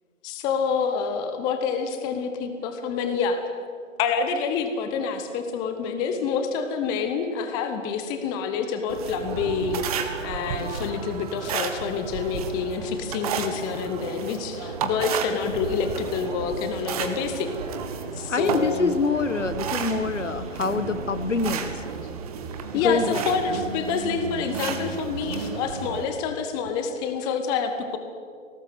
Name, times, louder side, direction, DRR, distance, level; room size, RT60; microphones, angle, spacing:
voice 1, 0.2-3.4 4.0-17.5 18.1-19.1 22.7-28.0, left 6 dB, 10° left, 7 dB, 0.9 m, -27 dB
sound 1, 8.9-26.0, right 6 dB, 30° right, 1.8 m, -32 dB
voice 2, 18.3-21.8 22.8-23.2, left 4 dB, 70° left, 12 dB, 1.7 m, -25 dB
22.0 x 18.5 x 9.3 m, 2.2 s
figure-of-eight pair, 140°, 38 cm